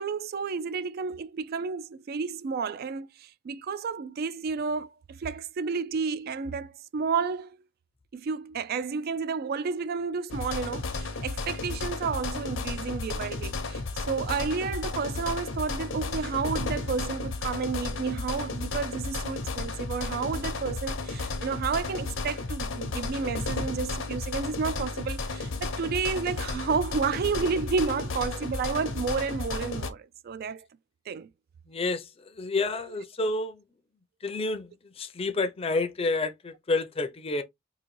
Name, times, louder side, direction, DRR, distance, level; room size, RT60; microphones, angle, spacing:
voice 1, 0.0-7.6 8.1-30.6 31.1-31.3, right 5 dB, 50° right, 0.3 m, -31 dB
sound 1, 10.3-29.9, left 3 dB, 75° left, 0.7 m, -33 dB
voice 2, 31.7-33.6 34.2-37.4, left 3 dB, 30° left, 0.5 m, -29 dB
3.8 x 2.6 x 3.0 m
head